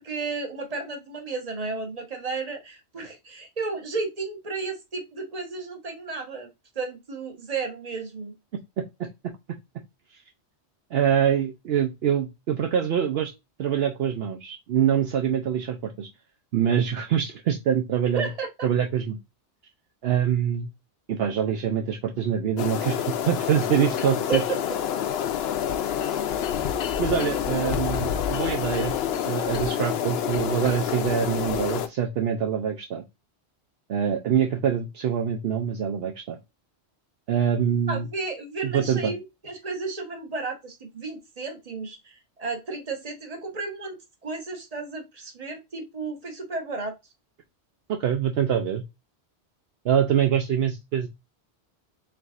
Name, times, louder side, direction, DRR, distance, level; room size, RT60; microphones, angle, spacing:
voice 1, 0.0-6.5 6.7-8.3 18.1-18.7 24.3-24.6 37.9-47.0, right 4 dB, 35° right, 1.2 m, -33 dB
voice 2, 10.9-13.3 13.6-16.1 16.5-18.3 18.6-19.2 20.0-20.7 21.1-24.4 27.0-29.0 29.3-33.0 33.9-36.4 37.3-38.1 38.6-39.1 47.9-48.8 49.8-51.1, right 8 dB, 70° right, 0.8 m, -25 dB
sound 1, 22.6-31.9, left 9 dB, 70° left, 0.8 m, -27 dB
4.7 x 3.9 x 2.4 m
omnidirectional pair, 1.1 m